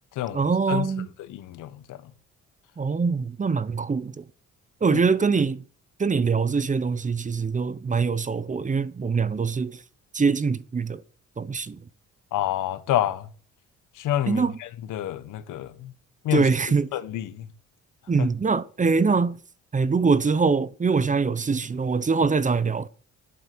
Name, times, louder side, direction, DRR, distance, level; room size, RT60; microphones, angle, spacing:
voice 1, 0.3-1.1 2.8-4.2 4.8-5.6 6.0-9.8 10.1-11.0 11.4-11.8 14.3-14.6 16.3-16.9 18.1-19.4 19.7-22.9, right 5 dB, 25° right, 0.8 m, -23 dB
voice 2, 1.3-2.0 4.9-5.0 12.3-13.3 14.0-14.4 14.9-15.9 16.2-16.5 16.9-17.4 18.2-18.3, left 12 dB, 90° left, 1.3 m, -27 dB
11.5 x 8.5 x 6.1 m
cardioid pair, 90°, 30 cm